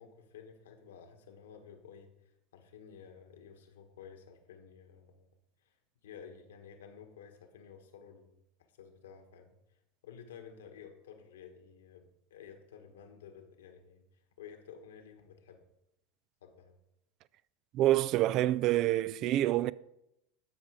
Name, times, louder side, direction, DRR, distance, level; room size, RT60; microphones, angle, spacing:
voice 1, 0.0-2.1 2.5-5.3 6.0-8.4 8.8-9.5 10.0-14.0 14.4-15.6 16.4-16.7, left 7 dB, 85° left, 1.5 m, -52 dB
voice 2, 17.7-19.7, right 14 dB, 50° right, 0.4 m, -27 dB
12.5 x 5.0 x 4.9 m
hypercardioid pair, 100°, 0 cm